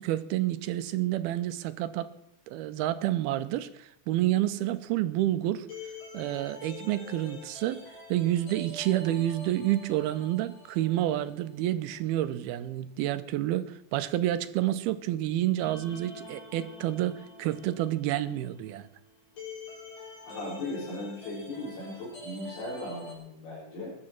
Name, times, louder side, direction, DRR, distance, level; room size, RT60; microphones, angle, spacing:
voice 1, 0.0-2.1 2.5-5.7 6.1-7.8 8.1-18.9, right 13 dB, 80° right, 12 dB, 2.6 m, -29 dB
sound 1, 4.9-11.6 11.9-12.0 15.6-23.1, left 2 dB, 60° left, 5.9 m, -46 dB
voice 2, 20.2-24.0, left 2 dB, 75° left, -8 dB, 6.2 m, -37 dB
21.5 x 10.5 x 4.5 m, 0.74 s
omnidirectional pair, 4.5 m